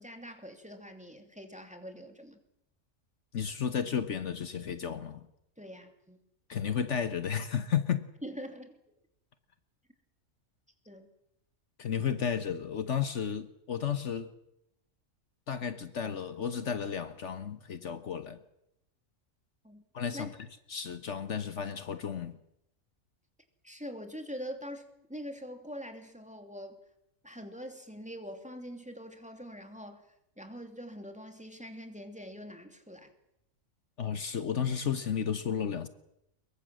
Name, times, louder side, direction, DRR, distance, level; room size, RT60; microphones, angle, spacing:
voice 1, 0.0-2.4 5.6-6.2 8.2-8.7 10.9-11.1 19.6-19.8 20.1-20.3 23.6-26.8 27.2-30.1 30.4-33.1, equal, 5° right, 2.7 m, -44 dB
voice 2, 3.3-5.2 6.5-8.0 11.8-14.3 15.5-18.4 19.9-20.3 20.7-22.4 34.0-35.9, left 7 dB, 65° left, 1.4 m, -33 dB
24.0 x 22.5 x 7.6 m
omnidirectional pair, 1.4 m